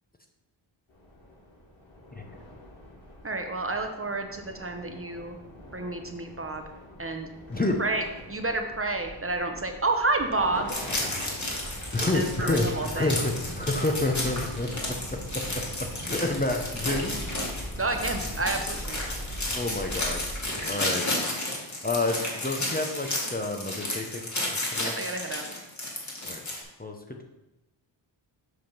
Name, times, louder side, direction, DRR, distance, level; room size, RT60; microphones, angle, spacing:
sound 1, 0.9-20.7, equal, 75° left, 3.0 m, -42 dB
voice 1, 3.2-5.4 5.7-6.7 7.0-7.3 7.8-11.0 12.1-13.2 17.8-19.0 24.8-25.5, right 2 dB, 30° right, 5 dB, 0.8 m, -30 dB
sound 2, 10.7-26.6, left 1 dB, 35° left, 1.9 m, -32 dB
sound 3, 11.0-17.5, right 2 dB, 45° right, 1.5 m, -44 dB
voice 2, 11.9-14.7 15.1-15.6 16.0-17.2 19.5-21.3 21.8-24.3 24.7-24.9 26.3-26.4 26.8-27.2, left 2 dB, 20° left, 2 dB, 0.7 m, -29 dB
7.9 x 3.6 x 5.9 m, 0.95 s
wide cardioid pair, 90°, 48 cm